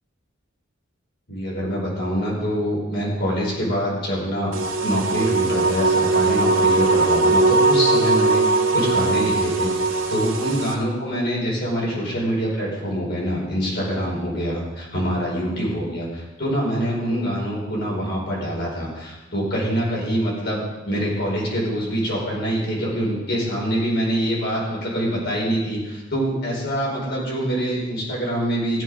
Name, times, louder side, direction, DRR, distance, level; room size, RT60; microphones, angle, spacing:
voice 1, 1.3-4.6 4.8-28.8, equal, 55° left, -4 dB, 5.2 m, -25 dB
sound 1, 4.5-10.7, right 3 dB, 75° right, 1.8 m, -20 dB
15.5 x 9.7 x 5.0 m, 1.1 s
head